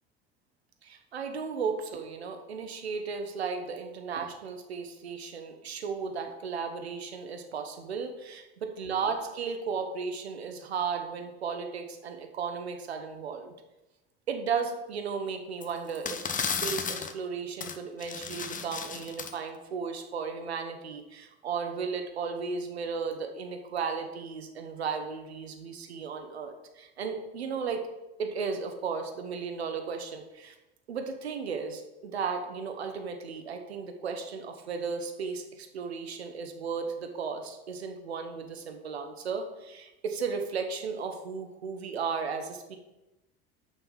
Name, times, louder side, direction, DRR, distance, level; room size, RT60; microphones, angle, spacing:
voice 1, 0.8-8.4 8.8-13.5 14.3-27.8 28.2-30.5 30.9-42.8, right 5 dB, 90° right, 5 dB, 1.1 m, -35 dB
sound 1, 15.6-15.7 15.9-17.1 17.6-17.8 18.0-19.3, left 6 dB, 25° left, 1.0 m, -34 dB
7.5 x 5.7 x 7.2 m, 1.0 s
hypercardioid pair, 75°, 31 cm